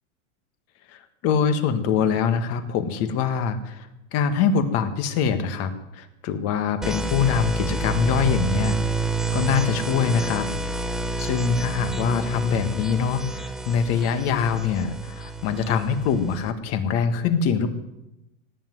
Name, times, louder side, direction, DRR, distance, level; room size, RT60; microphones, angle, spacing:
voice 1, 0.9-8.8 9.3-10.5 11.2-17.7, left 6 dB, 40° left, 10 dB, 1.6 m, -24 dB
sound 1, 6.8-16.5, right 2 dB, ahead, 0.5 m, -28 dB
17.5 x 7.7 x 9.3 m, 0.93 s
supercardioid pair, 145°, 38 cm